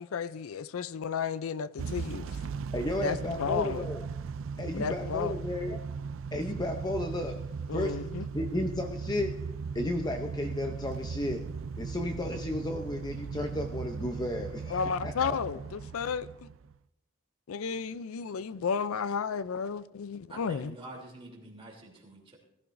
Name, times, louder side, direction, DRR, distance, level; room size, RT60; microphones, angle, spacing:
voice 1, 0.0-2.4 3.0-3.9 4.7-5.4 7.7-8.3 14.7-16.5 17.5-20.7, left 6 dB, 80° left, 0.4 m, -33 dB
Motor vehicle (road) / Engine starting / Accelerating revving vroom, 1.8-16.8, right 5 dB, 65° right, 0.4 m, -38 dB
voice 2, 2.7-4.1 4.6-5.8 6.3-15.4, left 1 dB, 20° left, 0.6 m, -34 dB
voice 3, 20.3-22.4, right 1 dB, 25° right, 3.1 m, -47 dB
20.5 x 14.0 x 2.6 m
head